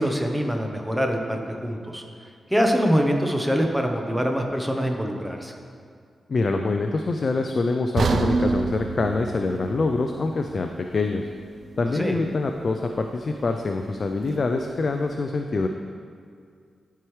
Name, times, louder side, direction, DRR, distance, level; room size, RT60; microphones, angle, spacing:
voice 1, 0.0-2.0 2.5-5.5 11.9-12.2, equal, 5° right, 3 dB, 0.7 m, -24 dB
voice 2, 6.3-11.2 11.8-15.7, left 3 dB, 45° left, 4 dB, 0.3 m, -25 dB
sound 1, 8.0-12.0 12.4-12.5 13.1-13.2, right 3 dB, 60° right, 0.4 m, -28 dB
12.0 x 4.6 x 3.2 m, 2.2 s
wide cardioid pair, 115°, 0 cm